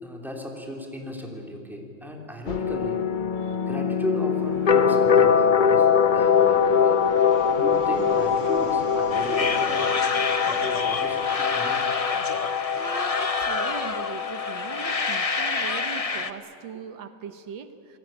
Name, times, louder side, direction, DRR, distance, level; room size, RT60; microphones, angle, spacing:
voice 1, 0.0-3.1 3.6-5.9 6.1-7.0 7.5-9.9 10.4-11.8, equal, ahead, 1 dB, 3.3 m, -35 dB
sound 1, 2.5-16.0, left 7 dB, 85° left, 0.4 m, -23 dB
Fixed-wing aircraft airplane, 4.3-11.9, right 3 dB, 40° right, 2.3 m, -43 dB
sound 2, 9.1-16.3, left 4 dB, 30° left, 0.6 m, -28 dB
voice 2, 12.8-18.0, right 7 dB, 80° right, 9 dB, 1.8 m, -39 dB
27.5 x 20.5 x 9.1 m, 2.7 s
omnidirectional pair, 2.0 m